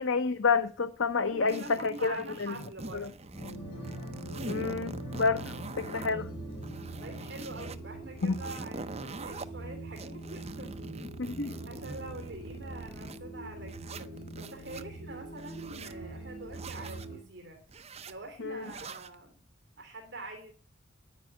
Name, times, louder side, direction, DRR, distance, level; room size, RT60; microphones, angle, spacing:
voice 1, 0.0-2.5 2.9-3.1 4.4-5.4 5.8-6.3 8.2-8.4 11.2-11.5 18.4-18.6, left 4 dB, 65° left, 0.8 m, -29 dB
voice 2, 1.2-3.3 7.0-10.8 11.4-14.1 14.4-17.6 18.1-19.3 19.8-20.5, right 2 dB, 55° right, 2.8 m, -45 dB
sound 1, 1.5-3.6 3.8-6.1 6.5-7.8 8.2-9.5 10.0-13.2 13.7-14.8 15.3-16.0 16.5-17.1 17.7-18.1 18.6-19.1, right 3 dB, 30° right, 0.7 m, -44 dB
sound 2, 3.3-17.2, right 1 dB, 25° left, 7.1 m, -42 dB
10.0 x 9.5 x 9.2 m
head